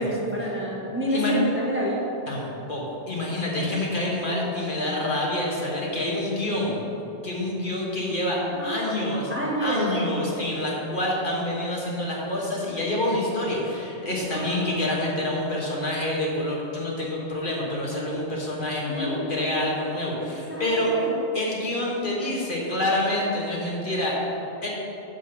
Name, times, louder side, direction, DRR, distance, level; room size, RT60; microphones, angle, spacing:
voice 1, 0.0-2.0 8.5-8.9 9.3-9.9 14.3-14.7 18.9-19.3 20.2-21.2, equal, 10° right, -4 dB, 1.1 m, -28 dB
voice 2, 2.3-6.8 7.2-9.3 9.6-20.9 21.3-24.2 24.6-24.7, left 1 dB, 45° left, -4 dB, 1.5 m, -27 dB
9.9 x 3.5 x 6.8 m, 3.0 s
omnidirectional pair, 1.2 m